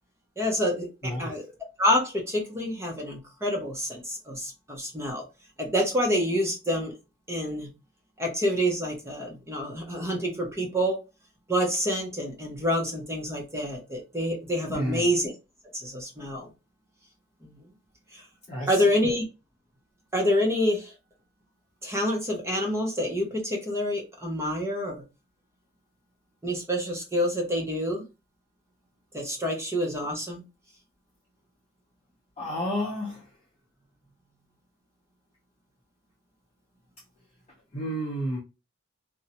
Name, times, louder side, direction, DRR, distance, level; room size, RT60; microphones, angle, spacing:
voice 1, 0.4-1.4 1.8-5.2 5.6-6.9 7.3-7.7 8.2-11.0 11.5-15.3 15.7-16.5 17.4-17.6 18.1-18.2 18.7-19.2 20.1-20.9 21.8-25.0 26.4-28.0 29.1-30.4, equal, 15° right, 0.7 m, -27 dB
voice 2, 14.7-15.0 18.5-18.7 32.4-33.3 37.7-38.4, equal, 35° left, 0.7 m, -30 dB
2.5 x 2.1 x 2.8 m
head